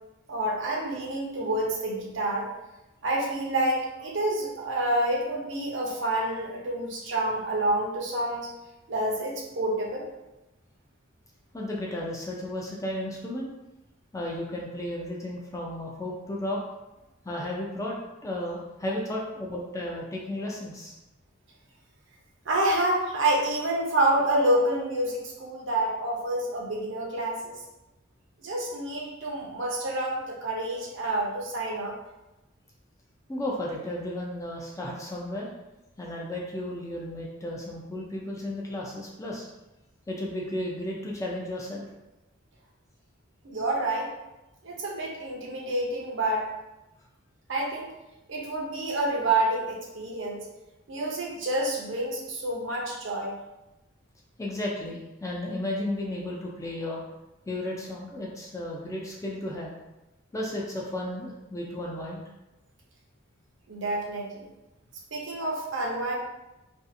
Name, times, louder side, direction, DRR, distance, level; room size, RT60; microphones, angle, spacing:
voice 1, 0.3-2.5 3.0-8.5 8.9-10.1 22.5-27.6 28.4-32.0 43.4-44.1 44.6-46.5 47.5-47.9 48.3-50.5 50.9-53.3 63.7-64.5 65.1-66.2, right 1 dB, 60° right, -2 dB, 0.6 m, -28 dB
voice 2, 11.5-13.5 14.1-16.6 17.2-18.0 18.2-20.9 33.3-35.5 36.0-39.5 40.1-41.9 54.4-57.0 57.5-59.7 60.3-62.2, left 1 dB, 15° left, -3 dB, 0.3 m, -33 dB
2.6 x 2.4 x 2.5 m, 1.0 s
head